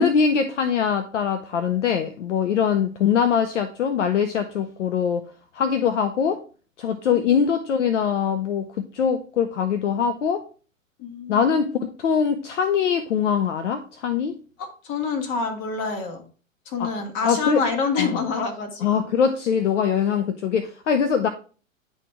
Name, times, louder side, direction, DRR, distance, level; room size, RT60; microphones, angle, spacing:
voice 1, 0.0-5.2 5.5-6.4 6.8-10.5 11.3-14.4 16.8-16.9 17.2-17.6 18.0-18.2 18.8-21.3, left 7 dB, 60° left, 0.8 m, -22 dB
voice 2, 7.1-7.4 11.0-11.5 14.6-16.2 16.7-18.9, left 5 dB, 35° left, 2.0 m, -27 dB
9.9 x 4.2 x 3.4 m
figure-of-eight pair, 110°, 40 cm